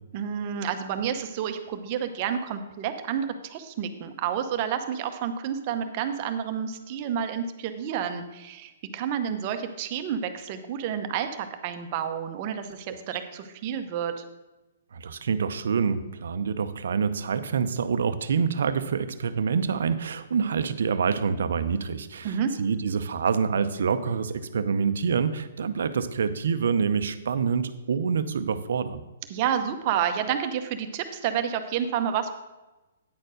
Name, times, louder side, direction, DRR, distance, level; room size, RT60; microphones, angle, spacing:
voice 1, 0.1-14.2 22.2-22.5 29.3-32.3, right 8 dB, 35° right, 8 dB, 0.8 m, -30 dB
voice 2, 14.9-29.0, right 6 dB, 75° right, 12 dB, 0.6 m, -26 dB
9.4 x 4.4 x 6.4 m, 1.1 s
hypercardioid pair, 150°, 0 cm